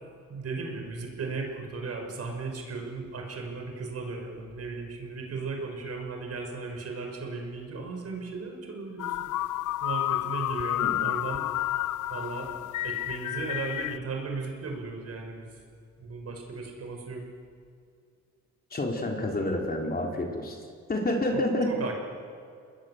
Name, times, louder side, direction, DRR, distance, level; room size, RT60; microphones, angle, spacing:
voice 1, 0.3-9.3 9.8-11.4 12.1-15.6 16.0-17.2 21.3-22.0, right 4 dB, 55° right, 2 dB, 6.1 m, -36 dB
sound 1, 9.0-14.0, left 15 dB, 80° left, 0.6 m, -30 dB
voice 2, 18.7-20.6 20.9-21.7, left 1 dB, 30° left, 1 dB, 4.0 m, -28 dB
29.0 x 20.0 x 8.1 m, 2.3 s
cardioid pair, 90°, 30 cm